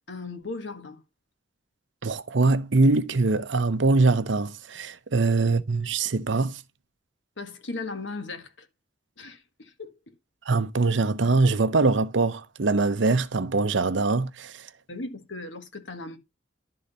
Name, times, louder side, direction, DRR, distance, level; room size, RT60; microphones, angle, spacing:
voice 1, 0.1-1.0 5.4-5.5 7.4-8.7 9.2-10.0 14.9-16.2, left 3 dB, 80° left, 1.7 m, -37 dB
voice 2, 2.0-6.6 10.5-14.5, right 3 dB, 80° right, 0.8 m, -23 dB
11.5 x 3.9 x 5.3 m
head